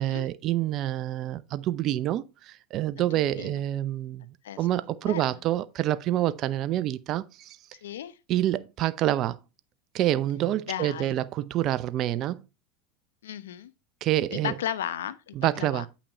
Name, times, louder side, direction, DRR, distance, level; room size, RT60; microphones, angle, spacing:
voice 1, 0.0-4.3 4.6-7.6 8.3-9.4 9.9-12.4 14.0-14.5 15.4-15.9, right 13 dB, 50° right, 0.7 m, -27 dB
voice 2, 3.0-3.6 4.4-4.6 5.0-5.4 7.8-8.2 10.7-11.2 13.2-13.7 14.3-15.9, left 11 dB, 85° left, 0.8 m, -35 dB
8.5 x 5.9 x 4.2 m
hypercardioid pair, 95°, 0 cm